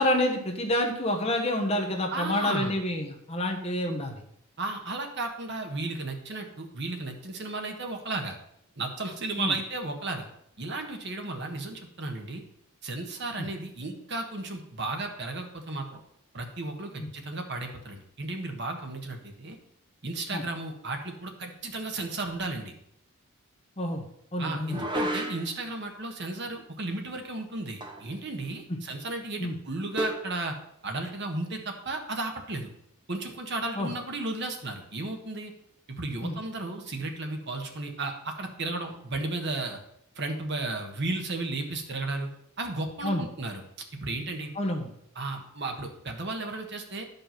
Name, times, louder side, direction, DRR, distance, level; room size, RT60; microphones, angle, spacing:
voice 1, 0.0-4.2 9.4-9.5 13.4-13.5 17.0-17.1 20.3-20.4 23.8-24.0 24.3-24.8 29.4-29.5 33.8-33.9 36.2-36.4 43.0-43.2 44.5-44.9, left 1 dB, 30° left, 2 dB, 1.2 m, -28 dB
voice 2, 2.1-2.8 4.6-8.4 8.8-10.3 10.6-12.4 12.8-16.0 16.3-19.6 20.0-22.7 24.4-30.6 30.8-32.7 33.1-35.5 35.9-39.8 40.1-42.3 42.6-43.6 44.0-44.5 45.1-47.1, right 2 dB, 50° right, 3 dB, 1.4 m, -34 dB
sound 1, 24.7-25.6 27.8-28.2 28.4-28.5 30.0-30.3, right 1 dB, 20° right, 0.9 m, -32 dB
11.0 x 5.5 x 5.8 m, 0.73 s
head